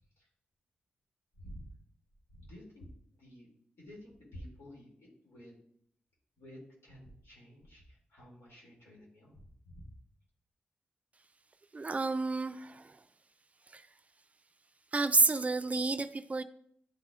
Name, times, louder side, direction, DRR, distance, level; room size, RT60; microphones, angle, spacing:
voice 1, 1.4-1.7 2.4-2.9 3.2-3.5 3.8-4.9 5.2-5.6 6.4-9.9, equal, 80° left, 2.6 m, -51 dB
voice 2, 11.7-13.0 13.7-13.9 14.9-16.4, right 3 dB, 35° right, 0.4 m, -30 dB
9.6 x 4.1 x 2.5 m
cardioid pair, 50°, 4 cm